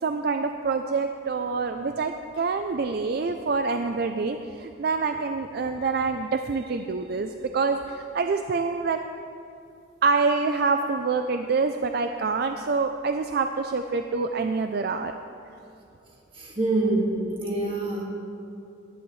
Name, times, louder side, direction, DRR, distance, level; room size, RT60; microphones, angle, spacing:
voice 1, 0.0-9.0 10.0-15.1, right 4 dB, 50° right, 6 dB, 0.4 m, -26 dB
voice 2, 16.4-18.0, right 2 dB, 25° right, -2 dB, 1.9 m, -25 dB
18.0 x 11.0 x 3.2 m, 2.7 s
head